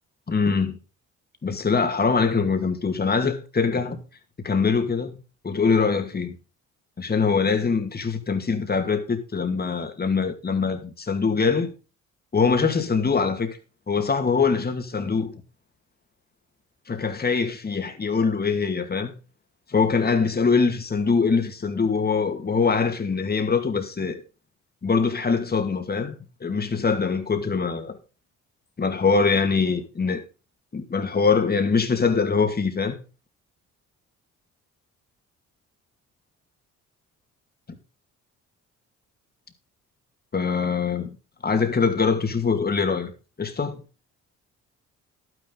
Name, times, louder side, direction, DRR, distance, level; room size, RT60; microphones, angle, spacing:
voice 1, 0.3-0.7 1.4-4.0 4.4-5.1 5.4-6.3 7.0-11.7 12.3-13.6 13.9-15.3 16.9-19.1 19.7-24.2 24.8-26.1 26.4-28.0 28.8-30.2 30.7-33.0 40.3-41.1 41.4-43.1 43.4-43.8, left 5 dB, 30° left, 2.4 m, -23 dB
12.0 x 9.7 x 4.0 m
cardioid pair, 90°, 30 cm